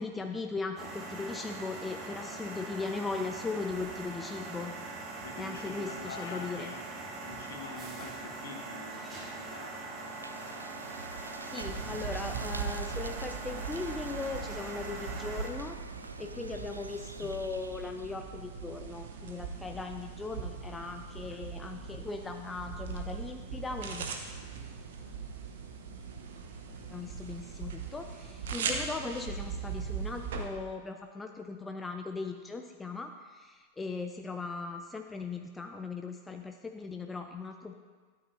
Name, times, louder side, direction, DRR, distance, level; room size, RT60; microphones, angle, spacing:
voice 1, 0.0-4.7 5.4-6.7 11.5-15.8 16.2-24.1 26.9-37.7, left 4 dB, 10° left, 5 dB, 0.5 m, -38 dB
sound 1, 0.8-15.5, right 3 dB, 25° right, 1.6 m, -42 dB
voice 2, 5.2-6.9 7.2-10.7, left 3 dB, 60° left, 2 dB, 1.4 m, -46 dB
sound 2, 9.9-18.2, right 3 dB, 80° right, 0.4 m, -46 dB
sound 3, 11.6-30.4, right 5 dB, 60° right, 1.0 m, -40 dB
12.5 x 8.4 x 2.7 m, 1.4 s
figure-of-eight pair, 90°, 0 cm